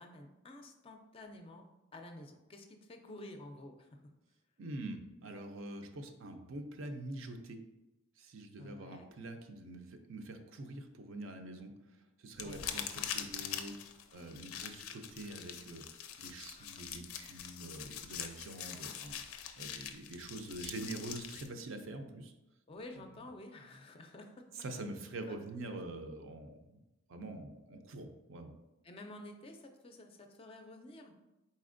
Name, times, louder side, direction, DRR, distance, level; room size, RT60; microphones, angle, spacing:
voice 1, 0.0-1.6 1.9-4.0 8.6-9.1 12.4-12.6 14.1-14.3 16.6-16.8 22.7-24.6 25.3-25.4 28.8-31.3, left 1 dB, 25° left, 4 dB, 0.4 m, -51 dB
voice 2, 4.6-7.6 8.2-13.7 14.1-19.2 19.6-22.3 24.5-26.8 27.1-28.5, right 2 dB, 65° right, 6 dB, 0.5 m, -45 dB
sound 1, 12.4-21.5, left 8 dB, 90° left, 0.4 m, -43 dB
4.2 x 4.1 x 2.5 m, 1.0 s
head